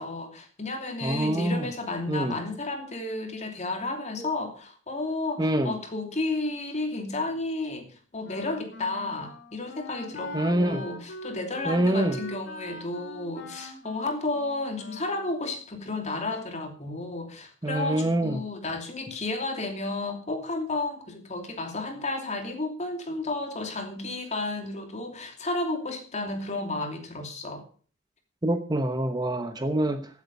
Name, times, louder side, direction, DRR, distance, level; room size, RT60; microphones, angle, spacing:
voice 1, 0.0-27.6, left 2 dB, 35° left, 4 dB, 2.8 m, -32 dB
voice 2, 1.0-1.7 2.1-2.3 5.4-5.7 10.3-10.8 11.7-12.2 17.6-18.4 28.4-30.1, right 1 dB, 20° right, 8 dB, 1.0 m, -25 dB
Wind instrument woodwind instrument, 8.2-15.3, left 1 dB, 60° left, 2.7 m, -42 dB
15.5 x 8.3 x 5.4 m, 0.41 s
head